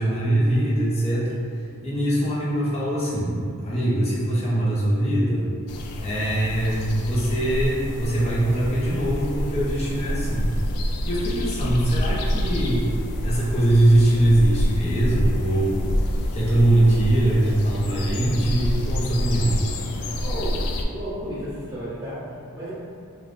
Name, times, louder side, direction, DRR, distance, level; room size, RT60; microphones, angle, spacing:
voice 1, 0.0-1.4 1.8-5.5 6.0-10.5 11.0-12.9 13.2-15.9 16.3-19.6, right 1 dB, 30° left, -7 dB, 0.6 m, -22 dB
sound 1, 5.7-20.8, equal, 80° left, 0.3 m, -27 dB
voice 2, 20.2-20.6 20.9-22.7, equal, 15° right, -14 dB, 1.2 m, -33 dB
3.3 x 2.2 x 2.5 m, 2.3 s
head